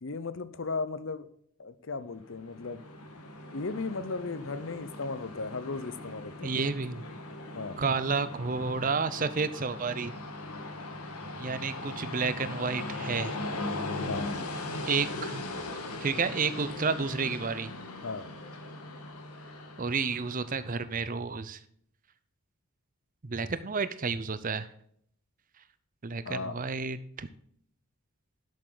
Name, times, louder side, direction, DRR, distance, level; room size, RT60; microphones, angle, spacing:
voice 1, 0.0-1.3 1.6-2.8 3.5-6.5 7.5-7.8 14.0-14.3 18.0-18.3 26.3-26.6, left 3 dB, 55° left, 14 dB, 0.7 m, -36 dB
Train, 2.2-20.9, left 2 dB, 85° left, 1.7 m, -39 dB
voice 2, 6.4-7.0 7.8-10.1 11.4-13.3 14.9-15.4 16.0-17.7 19.8-21.6 23.2-24.7 26.0-27.3, right 4 dB, 35° right, 13 dB, 0.6 m, -31 dB
11.5 x 7.8 x 3.9 m, 0.66 s
head